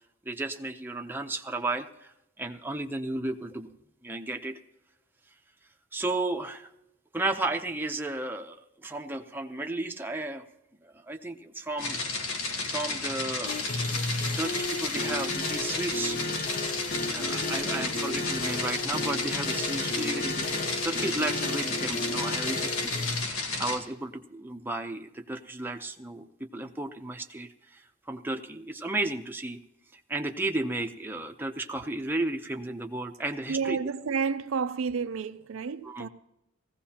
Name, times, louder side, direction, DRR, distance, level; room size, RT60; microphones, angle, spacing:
voice 1, 0.2-2.1 2.4-3.7 4.0-4.6 5.9-6.7 7.1-10.5 10.8-12.0 12.6-13.6 14.4-16.2 17.1-22.9 23.3-26.3 26.5-29.6 30.1-33.8 35.8-36.1, right 2 dB, 10° right, 0.7 m, -33 dB
sound 1, 11.8-23.8, left 3 dB, 70° left, 1.5 m, -32 dB
sound 2, 13.4-23.2, left 2 dB, 40° left, 0.8 m, -34 dB
voice 2, 33.5-36.1, right 5 dB, 65° right, 0.4 m, -30 dB
18.5 x 15.5 x 2.9 m
head